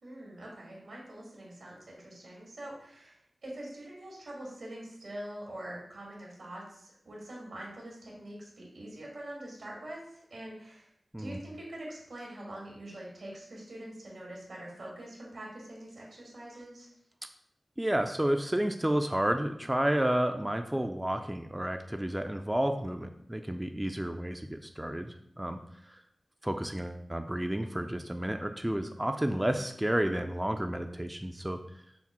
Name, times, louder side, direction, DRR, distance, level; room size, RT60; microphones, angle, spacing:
voice 1, 0.0-10.9 11.2-16.9, right 1 dB, 85° right, -3 dB, 1.7 m, -44 dB
voice 2, 17.8-25.6 25.9-26.0 26.4-31.6, right 1 dB, 15° right, 5 dB, 0.4 m, -31 dB
5.8 x 2.1 x 4.2 m, 0.73 s
cardioid pair, 45°, 0 cm